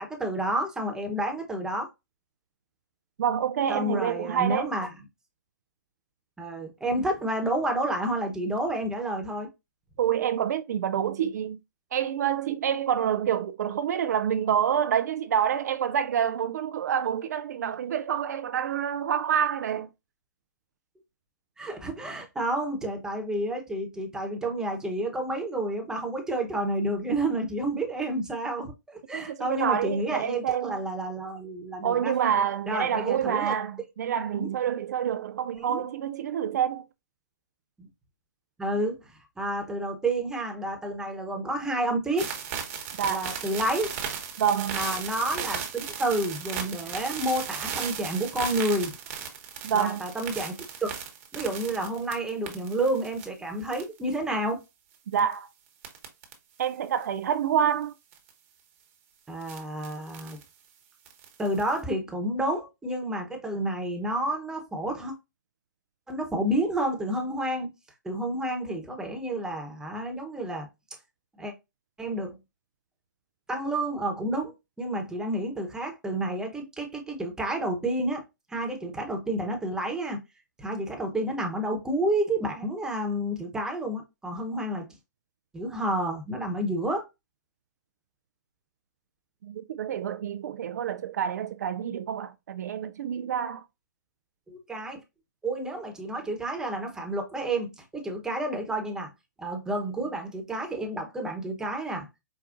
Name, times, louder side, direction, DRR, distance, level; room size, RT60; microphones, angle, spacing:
voice 1, 0.0-1.9 3.7-4.9 6.4-9.5 21.6-32.1 32.7-33.5 34.3-34.5 35.6-35.8 37.8-37.9 38.6-39.0 39.4-42.3 43.1-43.9 44.7-48.9 49.7-50.9 51.3-54.6 59.3-60.4 61.4-65.1 66.1-67.7 68.0-70.7 71.4-71.5 72.0-72.3 73.5-78.2 78.5-80.2 80.6-84.9 85.5-87.1 94.5-95.0 95.4-99.1 99.4-102.1, right 1 dB, 5° right, 1.0 m, -30 dB
voice 2, 3.2-4.7 10.0-11.6 11.9-19.9 29.1-30.8 31.8-36.8 43.0-43.3 44.4-44.9 49.6-50.0 55.1-55.5 56.6-57.9 89.4-93.6, right 9 dB, 60° right, 0.3 m, -27 dB
sound 1, 42.2-53.3 53.7-54.1 55.1-55.3 55.8-56.3 56.6-56.7 58.1-58.3 59.4-60.4 61.1-61.8, right 7 dB, 45° right, 1.1 m, -36 dB
4.9 x 2.3 x 2.5 m
hypercardioid pair, 135°, 10 cm